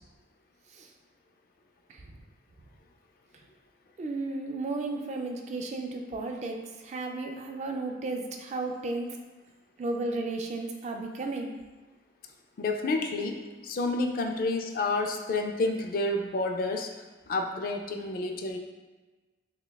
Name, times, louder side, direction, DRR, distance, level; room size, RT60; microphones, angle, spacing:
voice 1, 4.0-6.6 6.8-9.2 9.8-11.5, right 2 dB, 35° right, 3 dB, 0.3 m, -33 dB
voice 2, 12.6-16.9 17.3-18.6, left 2 dB, 50° left, 4 dB, 0.3 m, -29 dB
5.4 x 2.3 x 2.2 m, 1.2 s
head